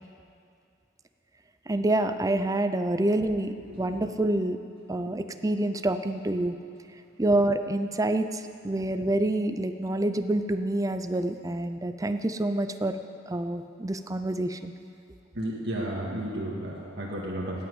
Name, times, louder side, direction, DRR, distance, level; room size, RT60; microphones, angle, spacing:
voice 1, 1.7-4.6 4.9-6.6 7.2-13.0 13.3-14.7, right 1 dB, 15° right, 9 dB, 0.5 m, -27 dB
voice 2, 3.6-4.1 5.0-5.1 15.3-17.7, right 1 dB, 60° right, -5 dB, 1.9 m, -33 dB
16.0 x 6.0 x 9.4 m, 2.4 s
head